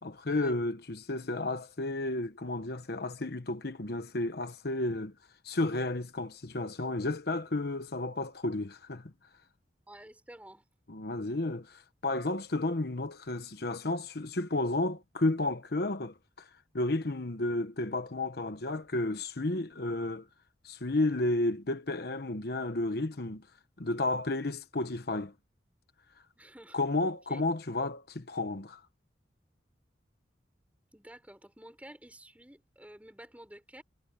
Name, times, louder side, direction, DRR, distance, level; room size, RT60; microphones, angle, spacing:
voice 1, 0.0-5.1 5.4-9.1 10.9-16.5 16.7-20.3 20.6-23.5 23.8-25.3 26.7-28.8, left 2 dB, 60° left, 1.1 m, -32 dB
voice 2, 9.9-10.6 26.4-26.8 27.3-27.5 30.9-33.8, right 1 dB, 10° right, 4.6 m, -51 dB
head